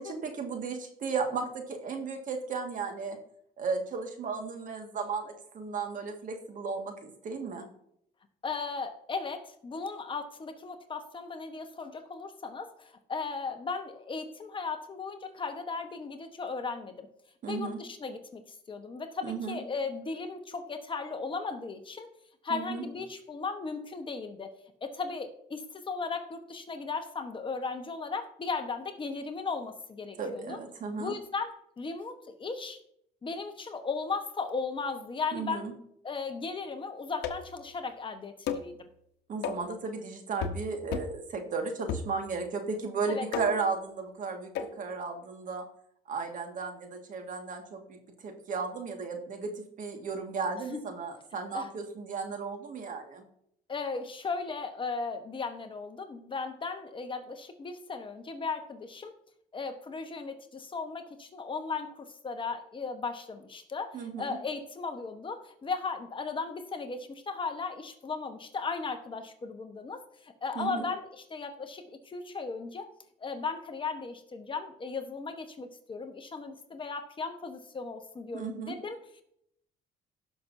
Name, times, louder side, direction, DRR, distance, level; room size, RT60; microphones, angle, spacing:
voice 1, 0.0-3.2 3.6-7.7 17.4-17.8 19.2-19.6 22.5-22.8 30.2-31.1 35.3-35.7 39.3-44.5 44.8-45.6 46.1-48.0 48.2-53.2 63.9-64.4 70.6-70.9 78.3-78.8, right 4 dB, 50° right, 4 dB, 1.8 m, -35 dB
voice 2, 8.4-17.1 17.4-18.4 18.7-22.1 22.4-24.6 24.8-30.6 31.0-32.8 33.2-35.7 36.0-38.8 43.1-43.2 50.7-50.8 51.5-51.7 53.7-59.1 59.5-72.9 73.2-79.0, left 4 dB, 30° left, 6 dB, 1.1 m, -36 dB
sound 1, 37.2-37.6 38.5-38.7 39.4-39.7 40.4-40.6 40.9-41.2 41.9-42.5 43.3-43.7 44.5-44.8, left 6 dB, 85° left, 0.9 m, -35 dB
18.0 x 6.1 x 2.7 m, 0.72 s
cardioid pair, 110°, 17 cm